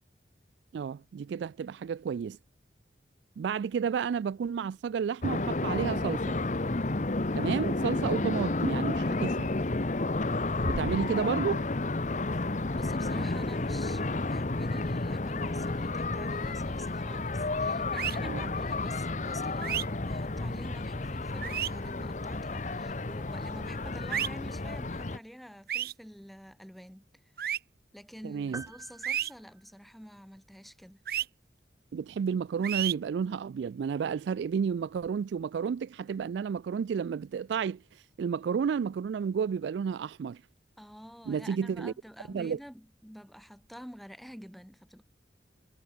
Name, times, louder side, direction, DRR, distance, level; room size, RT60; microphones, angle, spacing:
voice 1, 0.7-2.4 3.4-6.4 7.3-9.5 10.6-11.6 18.2-18.4 28.2-28.6 31.9-37.8 38.2-40.4 41.3-41.9 42.3-42.6, right 6 dB, 80° right, 0.3 m, -31 dB
sound 1, 5.2-25.2, left 2 dB, 45° left, 0.9 m, -31 dB
voice 2, 12.7-27.2 27.9-31.0 40.8-45.0, equal, ahead, 5.0 m, -48 dB
sound 2, 18.0-18.2 19.6-19.8 21.4-21.7 24.1-24.3 25.7-25.9 27.4-27.6 29.0-29.3 31.1-31.3 32.6-32.9, right 11 dB, 55° right, 0.8 m, -30 dB
sound 3, 28.5-30.3, right 3 dB, 20° right, 5.7 m, -47 dB
head